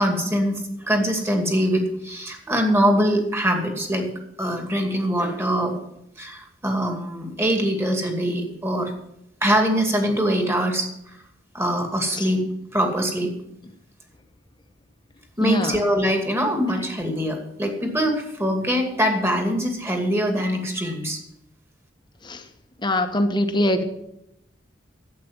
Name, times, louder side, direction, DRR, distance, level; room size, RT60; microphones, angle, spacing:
voice 1, 0.0-4.1 4.4-5.7 6.2-8.9 9.4-10.9 11.5-12.4 12.7-13.3 15.4-21.2, equal, 15° right, 3 dB, 2.4 m, -23 dB
voice 2, 15.4-15.8 22.2-22.4 22.8-23.8, left 1 dB, 25° left, 7 dB, 1.2 m, -22 dB
11.5 x 8.5 x 7.5 m, 0.82 s
head